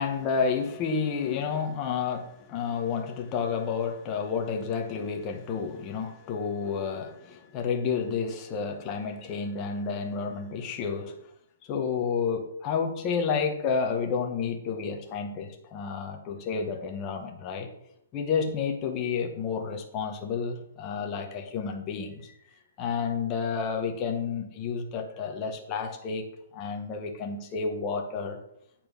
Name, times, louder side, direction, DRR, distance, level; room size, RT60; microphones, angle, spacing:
voice 1, 0.0-11.1 11.7-17.7 18.1-22.3 22.8-26.3 26.5-28.4, left 5 dB, 20° left, 2 dB, 1.0 m, -30 dB
9.1 x 4.4 x 5.2 m, 0.77 s
hypercardioid pair, 170°, 0 cm